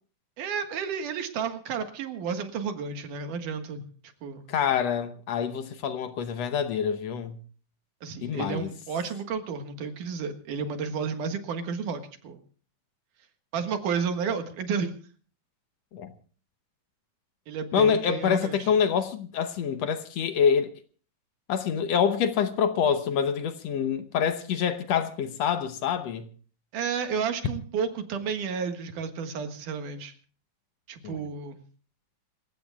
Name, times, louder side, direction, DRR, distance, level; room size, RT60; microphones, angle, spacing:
voice 1, 0.4-3.8 4.2-4.5 8.0-12.4 13.5-14.9 17.5-18.7 26.7-30.1 30.9-31.6, right 6 dB, 90° right, 3.1 m, -32 dB
voice 2, 4.5-7.4 8.2-8.7 15.9-16.1 17.7-20.7 21.5-26.3 31.0-31.2, left 7 dB, 65° left, 1.9 m, -26 dB
27.0 x 15.5 x 2.4 m
omnidirectional pair, 3.6 m